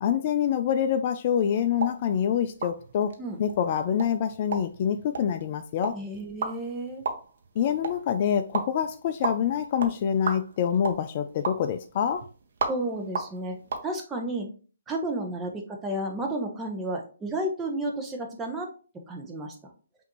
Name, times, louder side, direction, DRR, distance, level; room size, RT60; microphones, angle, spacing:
voice 1, 0.0-3.1 3.4-6.0 7.6-12.2, left 8 dB, 40° left, 0.3 m, -26 dB
sound 1, 1.7-13.9, right 4 dB, 60° right, 0.8 m, -36 dB
voice 2, 5.9-7.0 12.7-13.6 13.8-14.5 14.9-18.7 19.1-19.7, right 1 dB, 10° right, 0.9 m, -32 dB
5.6 x 2.7 x 3.0 m
hypercardioid pair, 145°, 0 cm